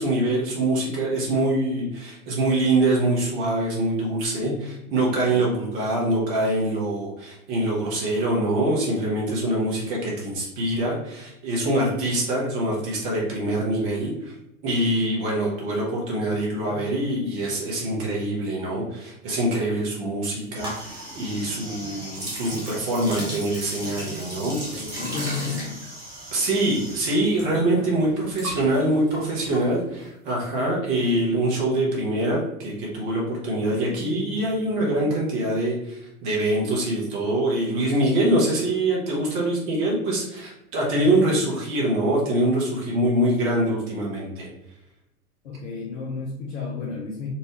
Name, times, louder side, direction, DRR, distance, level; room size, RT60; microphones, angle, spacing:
voice 1, 0.0-14.3 14.6-24.8 26.3-44.5, right 1 dB, 40° right, -4 dB, 1.3 m, -24 dB
voice 2, 4.4-5.5 16.3-16.9 24.6-25.8 27.4-28.0 33.6-35.0 40.9-41.2 45.4-47.3, left 4 dB, 50° left, -1 dB, 0.8 m, -34 dB
sound 1, 20.5-27.4 27.7-30.1, right 1 dB, 5° right, 0.3 m, -35 dB
4.2 x 2.6 x 3.0 m, 0.89 s
figure-of-eight pair, 95°, 45 cm